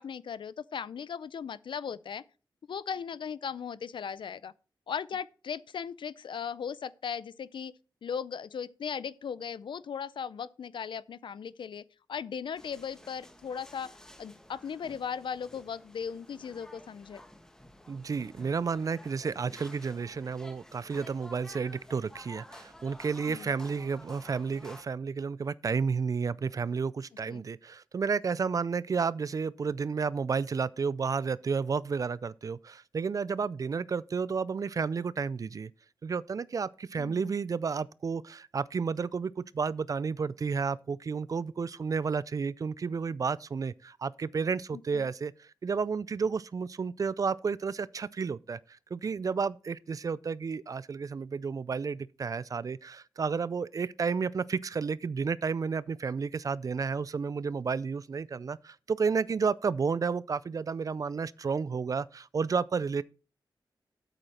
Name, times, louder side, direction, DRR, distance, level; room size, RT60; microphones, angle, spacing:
voice 1, 0.0-2.2 2.7-4.5 4.9-7.7 8.0-11.8 12.1-13.9 14.2-17.2 23.3-23.5 27.3-27.4 37.0-37.3 44.9-45.1, left 7 dB, 75° left, 0.5 m, -37 dB
sound 1, 12.6-24.8, left 1 dB, 5° left, 1.2 m, -52 dB
voice 2, 17.9-35.7 36.0-48.6 48.9-63.0, right 5 dB, 45° right, 0.4 m, -31 dB
8.5 x 8.0 x 4.3 m
wide cardioid pair, 160°, 8 cm